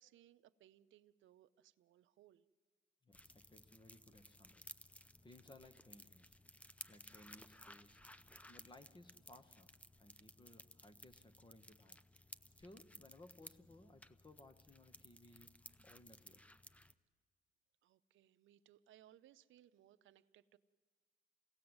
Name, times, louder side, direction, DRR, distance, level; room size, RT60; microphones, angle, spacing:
voice 1, 0.0-2.5 17.8-20.6, right 12 dB, 75° right, 13 dB, 0.6 m, -66 dB
voice 2, 3.0-6.4 6.9-8.0 8.5-12.0 12.6-16.5, left 2 dB, 25° left, 11 dB, 1.1 m, -62 dB
sound 1, 3.1-16.9, left 1 dB, 5° left, 0.6 m, -59 dB
27.0 x 17.5 x 8.0 m, 1.5 s
cardioid pair, 90°, 20 cm